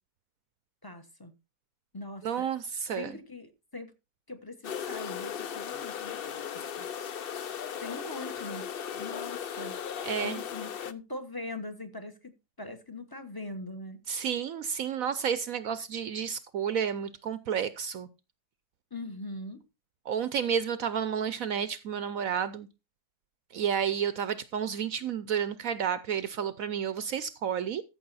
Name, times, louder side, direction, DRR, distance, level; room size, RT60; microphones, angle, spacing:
voice 1, 0.8-1.3 1.9-2.5 3.0-3.9 4.3-6.5 6.7-6.9 7.8-9.8 10.2-14.0 18.9-19.6, left 2 dB, 15° left, 1.1 m, -41 dB
voice 2, 2.2-3.1 10.0-10.4 14.1-18.1 20.1-22.7 23.5-27.8, right 8 dB, 65° right, 1.0 m, -31 dB
sound 1, 4.6-10.9, left 8 dB, 55° left, 0.6 m, -37 dB
14.0 x 6.7 x 4.1 m
omnidirectional pair, 1.7 m